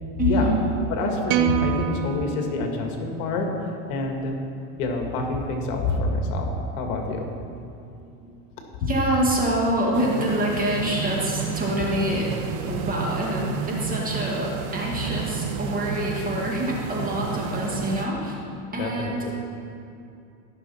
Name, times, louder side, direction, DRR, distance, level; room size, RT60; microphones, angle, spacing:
voice 1, 0.2-0.7 6.5-7.8 8.1-8.4 8.9-12.3 12.7-18.4 18.7-19.3, right 1 dB, 20° right, -3 dB, 2.0 m, -26 dB
voice 2, 0.9-4.4 4.8-7.3 18.8-19.3, left 2 dB, 65° left, 2 dB, 1.8 m, -27 dB
sound 1, 1.3-3.7, right 10 dB, 55° right, 0.7 m, -28 dB
sound 2, 9.9-18.1, right 6 dB, 70° right, 1.1 m, -31 dB
15.0 x 6.3 x 4.3 m, 2.6 s
supercardioid pair, 130°, 43 cm